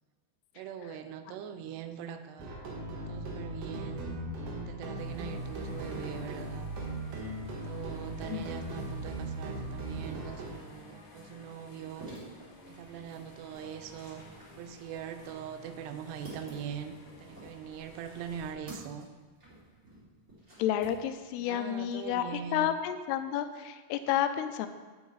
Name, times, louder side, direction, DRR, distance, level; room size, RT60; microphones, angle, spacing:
voice 1, 0.6-2.6 3.1-4.2 4.7-6.7 7.6-12.1 12.7-14.2 14.5-16.9 17.2-19.1 21.3-22.7, right 8 dB, 90° right, 9 dB, 2.8 m, -42 dB
sound 1, 2.4-10.5, right 1 dB, 60° right, 1.6 m, -38 dB
sound 2, 4.9-18.5, left 2 dB, 55° left, 1.3 m, -53 dB
sound 3, 11.9-21.5 21.8-22.6, right 2 dB, 20° right, 3.4 m, -51 dB
voice 2, 20.6-24.7, left 10 dB, 90° left, 10 dB, 2.6 m, -31 dB
8.8 x 8.1 x 4.8 m, 1.4 s
omnidirectional pair, 4.6 m